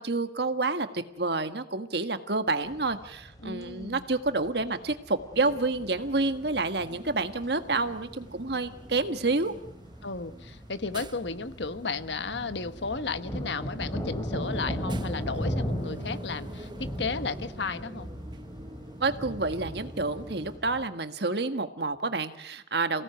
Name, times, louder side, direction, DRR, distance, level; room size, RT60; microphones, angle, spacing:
voice 1, 0.0-9.5 19.0-23.0, right 3 dB, 60° right, 9 dB, 1.6 m, -29 dB
sound 1, 2.7-20.9, equal, 20° left, 3.0 m, -38 dB
voice 2, 3.4-4.1 10.0-18.1 22.9-23.0, left 4 dB, 75° left, 12 dB, 1.2 m, -34 dB
sound 2, 5.3-20.6, right 1 dB, 25° right, 0.8 m, -47 dB
28.0 x 17.5 x 9.2 m, 0.86 s
head